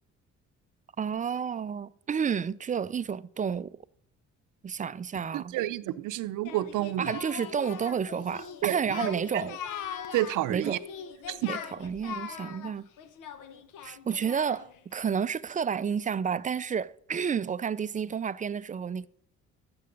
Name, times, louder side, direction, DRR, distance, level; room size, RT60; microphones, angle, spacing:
voice 1, 1.0-3.8 4.6-5.6 7.0-9.5 10.5-10.8 11.5-12.9 13.8-19.1, right 7 dB, 25° right, 0.4 m, -31 dB
voice 2, 5.3-7.2 8.6-9.6 10.1-10.8 11.3-11.5, right 15 dB, 85° right, 0.6 m, -30 dB
Singing, 6.4-14.8, left 8 dB, 85° left, 1.1 m, -41 dB
12.5 x 7.9 x 5.2 m
cardioid pair, 90°, 30 cm